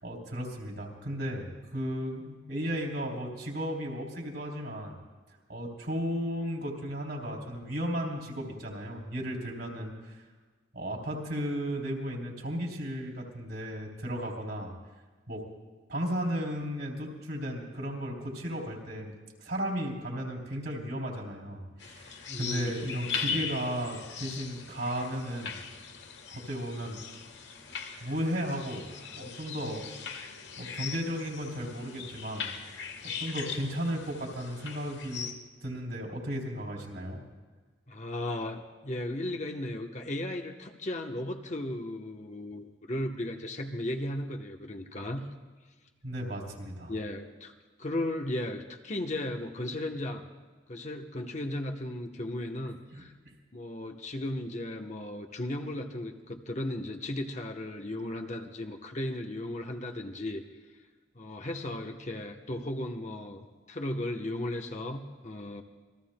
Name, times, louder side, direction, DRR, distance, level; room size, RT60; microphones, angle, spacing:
voice 1, 0.0-4.9 5.5-10.1 10.7-14.7 15.3-15.4 15.9-25.5 26.3-27.0 28.0-28.8 29.1-29.9 30.6-32.5 33.0-35.3 35.6-37.2 46.0-46.9 52.9-53.3, equal, 60° right, -1 dB, 3.2 m, -35 dB
sound 1, 21.8-35.3, left 6 dB, 70° left, 1.4 m, -40 dB
voice 2, 22.3-23.0 23.2-23.5 37.9-45.2 46.9-47.5 47.8-50.3 50.7-53.1 53.5-60.4 61.1-65.6, left 1 dB, 35° left, 4 dB, 0.9 m, -36 dB
27.5 x 21.0 x 2.2 m, 1.4 s
head